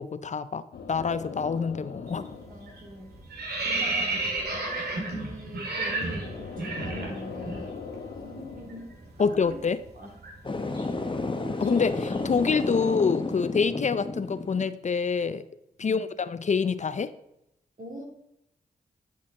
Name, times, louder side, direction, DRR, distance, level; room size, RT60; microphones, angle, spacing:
voice 1, 0.0-2.3 9.2-9.8 11.6-15.4 15.8-17.1, left 5 dB, 45° left, 14 dB, 0.5 m, -26 dB
sound 1, 0.7-8.9, left 5 dB, 85° left, 0.9 m, -42 dB
sound 2, 2.1-2.4 2.7-7.6 7.9-8.1 8.4-12.4, right 2 dB, 75° right, 1.9 m, -33 dB
voice 2, 2.5-3.2 3.6-4.3 5.0-7.8 8.2-9.7 9.9-10.2 10.6-10.7 15.8-16.1 17.8-18.0, equal, 55° right, 1 dB, 2.4 m, -43 dB
sound 3, 10.4-14.7, left 3 dB, 30° left, 0.9 m, -31 dB
10.0 x 5.7 x 3.6 m, 0.81 s
cardioid pair, 45°, 17 cm